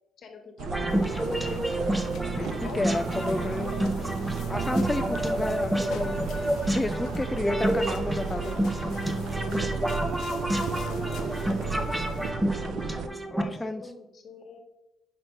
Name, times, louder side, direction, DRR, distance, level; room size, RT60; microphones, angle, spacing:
voice 1, 0.2-2.0 11.0-11.9 13.4-14.6, left 4 dB, 60° left, 4 dB, 1.4 m, -46 dB
sound 1, 0.6-13.1, right 5 dB, 75° right, 0.6 m, -34 dB
sound 2, 0.7-13.4, right 1 dB, 10° right, 0.9 m, -29 dB
sound 3, 0.9-12.3, left 7 dB, 80° left, 0.6 m, -45 dB
voice 2, 2.4-3.7 4.0-4.2 4.5-6.2 6.7-8.6 13.3-13.8, left 2 dB, 15° left, 6 dB, 0.4 m, -31 dB
5.8 x 4.3 x 5.2 m, 0.89 s
cardioid pair, 90°, 0 cm